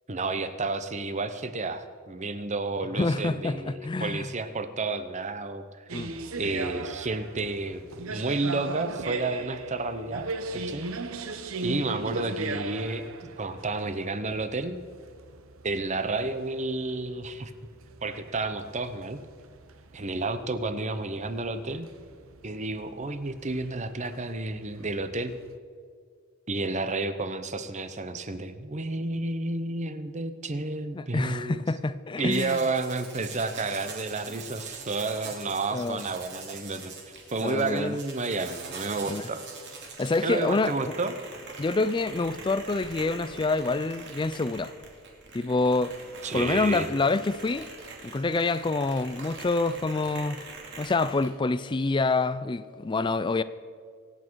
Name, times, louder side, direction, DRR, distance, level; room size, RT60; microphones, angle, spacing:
voice 1, 0.1-6.1 6.4-10.9 11.6-14.8 15.6-17.5 18.0-19.2 19.9-21.9 22.4-25.3 26.5-31.6 32.2-36.9 37.3-39.4 40.2-41.1 46.2-46.9, right 3 dB, 30° right, 0.8 m, -31 dB
voice 2, 2.9-4.3 5.9-6.1 30.9-32.6 35.7-36.0 37.4-38.0 39.1-39.2 40.0-40.7 41.6-44.7 45.3-45.9 46.3-47.7 48.0-50.4 50.8-53.4, left 3 dB, 20° left, 0.4 m, -27 dB
sound 1, 5.9-25.6, right 3 dB, 70° right, 0.9 m, -39 dB
sound 2, 32.3-51.3, right 4 dB, 55° right, 2.6 m, -43 dB
25.5 x 8.5 x 4.7 m
head